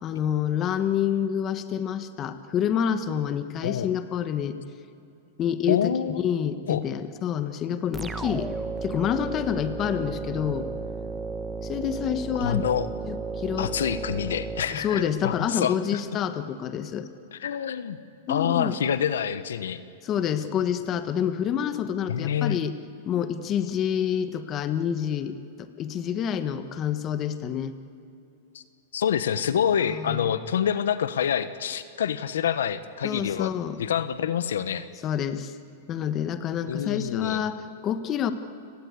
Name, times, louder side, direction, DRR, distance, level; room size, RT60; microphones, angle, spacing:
voice 1, 0.0-4.6 5.4-8.5 8.8-10.7 11.6-12.6 13.1-13.7 14.7-17.1 18.3-18.8 20.0-22.7 23.0-27.7 29.9-30.3 33.0-33.8 35.0-35.5 35.9-38.3, left 9 dB, 30° left, 10 dB, 1.4 m, -28 dB
voice 2, 5.7-6.2 6.7-6.8 12.4-12.9 13.6-16.0 17.3-18.0 18.3-19.8 22.1-22.6 28.5-28.6 28.9-33.5 33.8-34.9 36.7-37.4, left 8 dB, 85° left, 13 dB, 1.1 m, -27 dB
sound 1, 7.9-15.4, right 4 dB, 10° right, 1.0 m, -34 dB
30.0 x 18.0 x 8.3 m, 2.7 s
hypercardioid pair, 140°, 0 cm